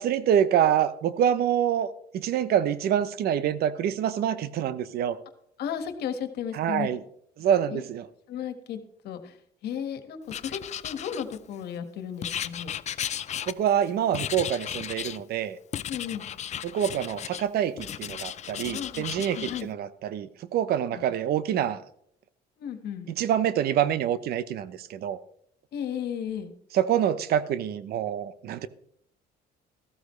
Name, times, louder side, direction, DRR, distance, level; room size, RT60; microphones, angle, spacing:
voice 1, 0.0-5.2 6.5-7.0 7.4-8.1 13.5-15.6 16.6-21.8 23.2-25.2 26.7-28.7, right 9 dB, 65° right, 0.9 m, -26 dB
voice 2, 5.6-6.9 7.7-7.8 8.3-8.8 9.0-9.4 9.6-12.7 15.9-16.2 18.7-19.0 19.3-19.7 20.9-21.1 22.6-23.1 25.7-26.5, left 8 dB, 75° left, 1.7 m, -34 dB
Writing, 10.3-11.6 12.2-13.8 14.1-15.2 15.7-17.5 17.8-19.6, left 10 dB, 45° left, 0.5 m, -35 dB
14.0 x 13.0 x 3.2 m
cardioid pair, 110°, 17 cm